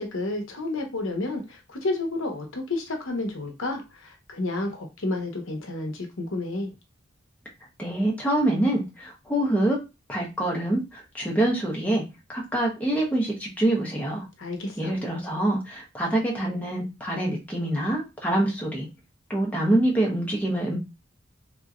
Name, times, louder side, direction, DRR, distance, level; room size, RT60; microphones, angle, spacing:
voice 1, 0.0-6.7 14.4-14.9, left 2 dB, 80° left, 3 dB, 0.9 m, -31 dB
voice 2, 7.8-9.8 10.1-12.0 12.3-14.3 14.8-18.9 19.3-20.8, right 1 dB, 5° left, -3 dB, 1.0 m, -25 dB
3.9 x 2.9 x 2.5 m, 0.25 s
head